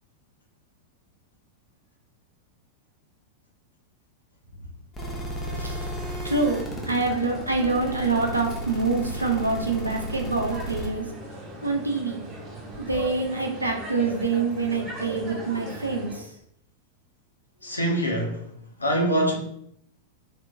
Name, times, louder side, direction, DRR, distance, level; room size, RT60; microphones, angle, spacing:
sound 1, 4.9-10.9, right 1 dB, 15° left, 0.8 m, -34 dB
sound 2, 5.4-16.2, right 1 dB, 30° right, 1.3 m, -39 dB
voice 1, 6.2-11.0 11.6-12.2 12.8-16.3, right 3 dB, 85° right, 0.6 m, -26 dB
voice 2, 17.6-18.5 18.8-19.4, right 1 dB, 80° left, 0.7 m, -24 dB
3.3 x 2.9 x 2.6 m
figure-of-eight pair, 90°, 0 cm